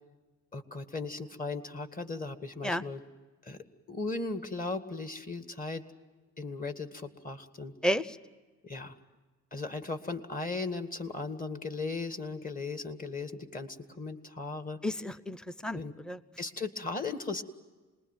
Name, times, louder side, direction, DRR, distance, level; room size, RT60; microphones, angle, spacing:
voice 1, 0.5-3.0 3.4-5.8 6.4-7.7 8.6-9.0 9.5-14.8 15.7-15.9 16.4-17.4, left 3 dB, 30° left, 9 dB, 2.1 m, -37 dB
voice 2, 7.8-8.2 14.8-16.2, equal, 5° left, 16 dB, 0.8 m, -32 dB
27.0 x 21.0 x 9.1 m, 1.3 s
cardioid pair, 90°, 30 cm